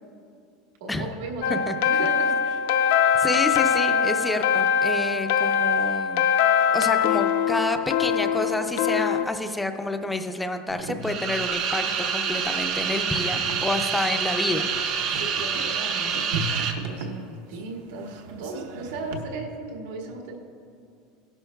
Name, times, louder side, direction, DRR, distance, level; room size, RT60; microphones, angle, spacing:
voice 1, 0.8-1.6 1.9-2.6 15.1-20.4, right 2 dB, 90° right, -1 dB, 1.8 m, -36 dB
sound 1, 1.4-9.2, left 8 dB, 75° left, 0.6 m, -22 dB
voice 2, 3.1-6.2 6.7-14.7, left 2 dB, 5° left, 7 dB, 0.4 m, -28 dB
sound 2, 10.7-19.2, right 3 dB, 70° right, 0.8 m, -37 dB
sound 3, 11.0-16.7, right 6 dB, 40° right, 0.8 m, -27 dB
17.0 x 11.5 x 2.3 m, 2.4 s
supercardioid pair, 175°, 0 cm